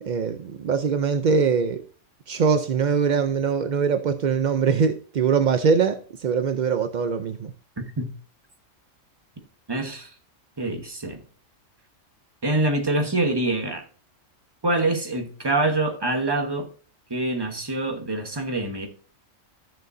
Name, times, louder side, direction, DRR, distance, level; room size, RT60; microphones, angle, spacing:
voice 1, 0.0-1.8 2.3-7.5, right 6 dB, 65° right, 0.4 m, -22 dB
voice 2, 7.8-8.2 9.7-10.1 10.6-11.2 12.4-13.8 14.6-16.7 17.1-18.9, right 2 dB, 20° right, 1.1 m, -25 dB
13.5 x 6.8 x 2.6 m
omnidirectional pair, 1.4 m